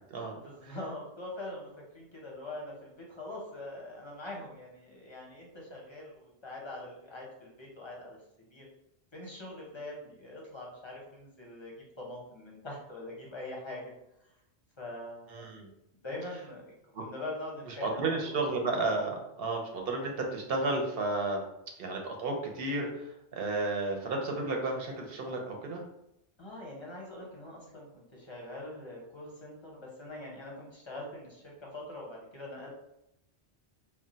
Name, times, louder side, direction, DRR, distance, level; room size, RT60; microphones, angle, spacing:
voice 1, 0.1-8.2 8.5-8.6 9.1-13.9 14.8-15.4 16.0-18.4 26.4-32.7, left 1 dB, 35° left, -2 dB, 0.5 m, -43 dB
voice 2, 15.3-15.7 17.7-21.5 21.8-25.8, right 2 dB, 65° right, 1 dB, 0.8 m, -32 dB
2.2 x 2.1 x 3.8 m, 0.81 s
omnidirectional pair, 1.1 m